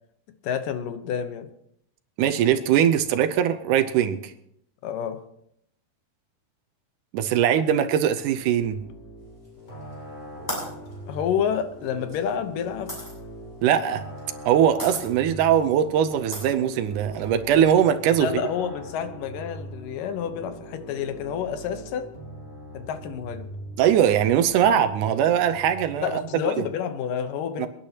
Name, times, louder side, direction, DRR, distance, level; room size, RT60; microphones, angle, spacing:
voice 1, 0.4-1.5 4.8-5.2 11.1-12.9 18.2-22.1 22.7-23.5 26.0-27.7, left 8 dB, 85° left, 9 dB, 2.6 m, -29 dB
voice 2, 2.2-4.3 7.1-8.8 13.6-14.1 14.5-18.3 23.8-26.6 27.6-27.7, right 9 dB, 80° right, 9 dB, 2.1 m, -21 dB
sound 1, 8.2-26.3, equal, 30° left, 4.6 m, -42 dB
sound 2, 9.4-9.9 10.5-13.1 14.2-14.5 14.8-15.0 15.6-15.7 16.3-17.3, equal, 10° left, 7.3 m, -35 dB
28.5 x 10.0 x 2.9 m, 0.73 s
omnidirectional pair, 3.7 m